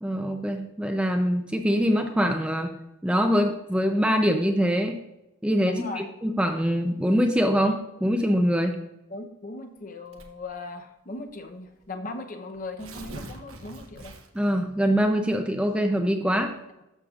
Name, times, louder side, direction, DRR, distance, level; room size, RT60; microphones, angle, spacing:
voice 1, 0.0-2.8 3.0-5.0 5.4-8.8 14.3-16.5, equal, 5° right, 4 dB, 0.5 m, -24 dB
voice 2, 5.6-6.1 9.1-14.1, left 2 dB, 40° left, 5 dB, 0.7 m, -38 dB
Tearing, 10.1-10.5 11.4-11.5 11.8-11.9 12.6-14.5, right 1 dB, 80° right, 1.1 m, -42 dB
13.0 x 6.6 x 2.4 m, 0.91 s
head